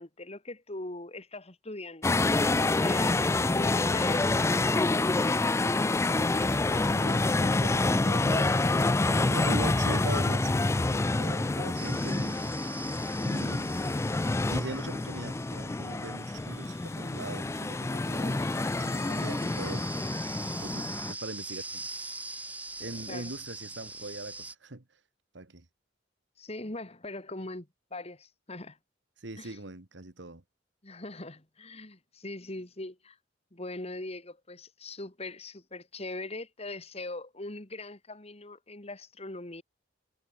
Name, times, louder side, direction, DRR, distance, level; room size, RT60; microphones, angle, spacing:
voice 1, 0.0-4.9 23.1-23.3 26.4-28.8 29.4-29.6 30.8-33.2 33.5-39.6, left 2 dB, 35° left, 2.4 m, -41 dB
sound 1, 2.0-21.1, left 2 dB, 15° left, 0.4 m, -27 dB
voice 2, 6.0-8.6 9.2-12.4 13.2-13.7 14.5-19.8 20.6-21.9 22.8-24.8 25.3-25.7 29.2-30.4, right 2 dB, 65° right, 1.7 m, -41 dB
sound 2, 11.7-24.5, right 2 dB, 10° right, 0.8 m, -43 dB
head